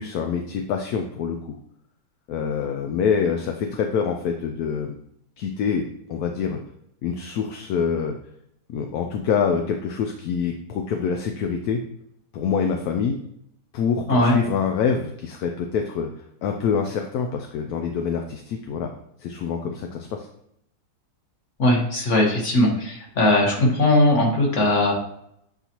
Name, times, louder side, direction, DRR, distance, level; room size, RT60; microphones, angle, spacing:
voice 1, 0.0-1.5 2.3-4.9 5.4-5.8 6.1-6.6 7.0-8.2 8.7-11.8 12.3-13.2 13.7-16.1 16.4-18.9 19.2-20.3, left 6 dB, 70° left, 4 dB, 1.0 m, -25 dB
voice 2, 21.6-24.9, left 1 dB, 45° left, -1 dB, 1.7 m, -19 dB
8.1 x 4.0 x 2.9 m, 0.75 s
omnidirectional pair, 1.9 m